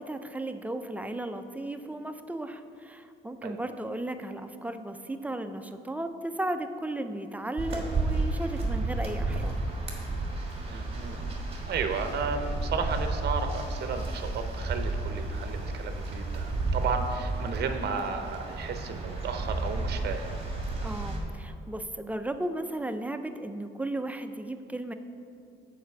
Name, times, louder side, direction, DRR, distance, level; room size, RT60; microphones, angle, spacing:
voice 1, 0.0-9.5 20.8-24.9, right 1 dB, 5° right, 8 dB, 0.4 m, -35 dB
sound 1, 7.6-21.2, right 2 dB, 30° right, 1.6 m, -32 dB
voice 2, 10.7-11.4 11.6-20.4, right 5 dB, 55° right, 7 dB, 0.7 m, -33 dB
6.6 x 4.9 x 6.5 m, 2.5 s
cardioid pair, 90°, 20 cm